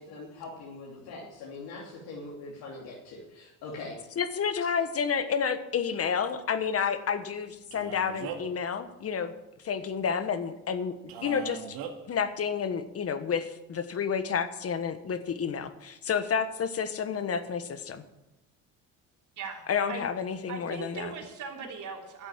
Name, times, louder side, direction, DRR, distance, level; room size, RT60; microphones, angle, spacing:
voice 1, 0.0-3.9, left 3 dB, 85° left, -4 dB, 3.1 m, -42 dB
voice 2, 4.1-9.3 9.6-10.9 11.2-11.8 12.1-18.0 19.7-21.1, left 6 dB, 40° left, 11 dB, 1.3 m, -30 dB
Male speech man speaking, 7.7-8.6 11.1-11.9, right 7 dB, 80° right, 2.0 m, -39 dB
voice 3, 20.5-22.3, right 6 dB, 55° right, 0 dB, 3.5 m, -39 dB
12.0 x 8.2 x 8.7 m, 0.95 s
cardioid pair, 100°, 36 cm